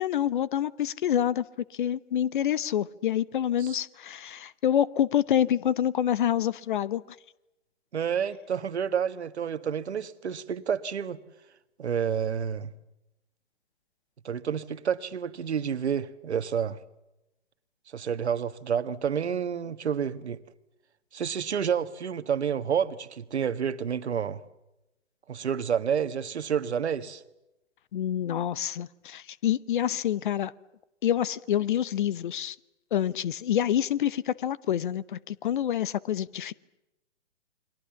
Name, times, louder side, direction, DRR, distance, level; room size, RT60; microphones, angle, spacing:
voice 1, 0.0-1.4 1.7-7.0 27.9-30.5 31.0-32.6 32.9-36.5, left 10 dB, 45° left, 0.9 m, -27 dB
voice 2, 7.9-11.2 11.8-12.7 14.3-16.8 17.9-20.4 21.1-24.4 25.3-27.2, right 7 dB, 65° right, 1.6 m, -29 dB
29.5 x 23.5 x 7.1 m
figure-of-eight pair, 130°, 36 cm